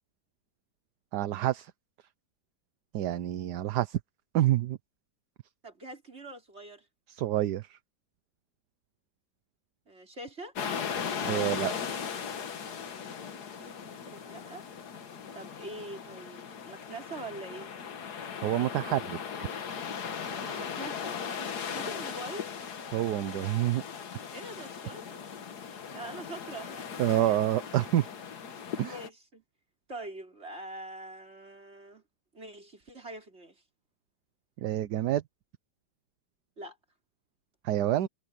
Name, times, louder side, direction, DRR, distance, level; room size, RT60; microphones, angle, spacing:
voice 1, 1.1-1.7 2.9-4.0 4.3-4.8 7.1-7.8 11.2-11.7 18.4-19.5 22.9-23.8 27.0-28.1 28.8-28.9 34.6-35.2 37.6-38.1, right 13 dB, 70° right, 1.3 m, -28 dB
voice 2, 5.6-6.9 9.9-10.5 13.6-14.6 15.3-17.7 20.3-22.6 24.3-25.3 25.9-27.5 28.8-29.4 29.9-32.0 32.3-33.6 36.6-36.8, right 2 dB, 35° right, 4.7 m, -44 dB
sound 1, 10.6-29.1, left 7 dB, 60° left, 1.9 m, -38 dB
omnidirectional pair, 1.9 m